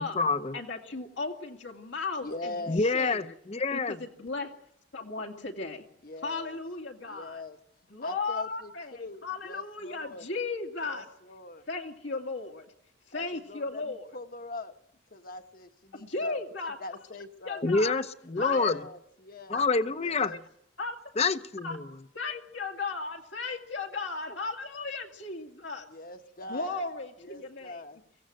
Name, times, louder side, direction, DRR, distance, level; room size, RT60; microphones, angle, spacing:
voice 1, 0.0-0.6 2.7-4.0 17.6-18.8 19.5-20.4 21.2-21.8, left 4 dB, 35° left, 0.7 m, -27 dB
voice 2, 0.5-3.3 3.7-4.5 4.9-5.9 6.2-7.4 7.9-11.1 11.7-12.7 13.1-14.1 15.9-16.8 17.4-18.1 18.4-18.8 19.5-19.6 20.3-20.4 20.8-21.0 21.6-21.8 22.1-25.9 26.5-27.8, left 3 dB, 80° left, 2.3 m, -36 dB
voice 3, 2.2-2.8 6.0-6.6 7.1-7.6 8.0-8.7 9.0-10.2 10.8-11.6 13.1-14.7 15.1-16.4 16.8-17.6 18.4-19.6 20.0-20.4 25.9-26.8 27.2-28.0, left 2 dB, 50° left, 1.3 m, -42 dB
23.5 x 16.5 x 7.7 m
head